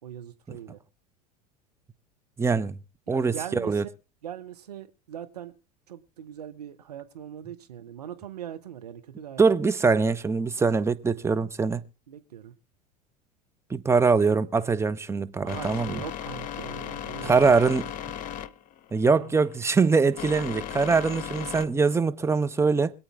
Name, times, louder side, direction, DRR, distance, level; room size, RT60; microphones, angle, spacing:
voice 1, 0.0-0.8 3.1-3.7 4.2-5.5 5.9-9.4 12.1-12.5 15.4-17.6 19.1-19.3, right 10 dB, 70° right, 1.3 m, -41 dB
voice 2, 2.4-2.8 3.1-3.8 9.4-11.8 13.7-16.0 17.2-17.9 18.9-22.9, right 4 dB, 15° right, 1.1 m, -23 dB
sound 1, 15.5-21.6, left 10 dB, 40° left, 1.1 m, -37 dB
25.5 x 8.8 x 3.6 m
figure-of-eight pair, 75°, 21 cm